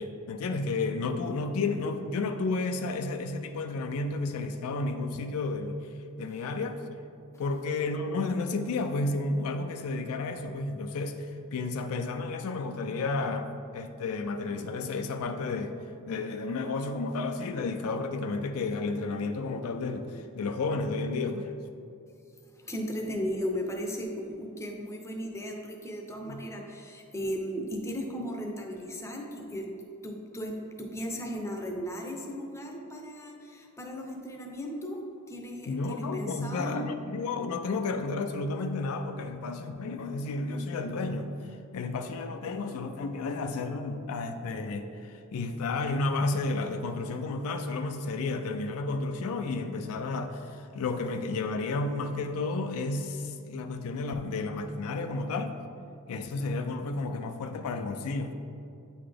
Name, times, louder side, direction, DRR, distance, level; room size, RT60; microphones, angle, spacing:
voice 1, 0.0-5.7 6.2-6.8 7.4-13.5 13.7-15.8 16.1-21.5 26.3-26.4 35.7-41.4 41.7-55.6 56.1-58.3, left 3 dB, 70° left, 6 dB, 0.4 m, -32 dB
voice 2, 22.6-29.7 30.0-35.0 35.3-36.9, equal, 15° left, 1 dB, 0.6 m, -36 dB
8.5 x 3.9 x 3.3 m, 2.6 s
head